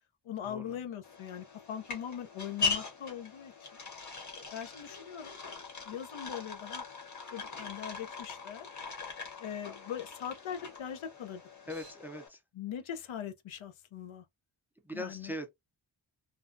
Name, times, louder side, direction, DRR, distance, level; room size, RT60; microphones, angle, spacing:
voice 1, 0.2-3.5 4.5-5.4 5.8-6.9 7.3-8.7 9.4-11.4 12.5-14.2 14.9-15.3, left 9 dB, 85° left, 0.6 m, -41 dB
sound 1, 1.0-12.3, left 5 dB, 40° left, 0.9 m, -40 dB
voice 2, 11.7-12.4 14.8-15.5, left 1 dB, 5° right, 0.4 m, -40 dB
2.5 x 2.1 x 2.5 m
wide cardioid pair, 140°, 47 cm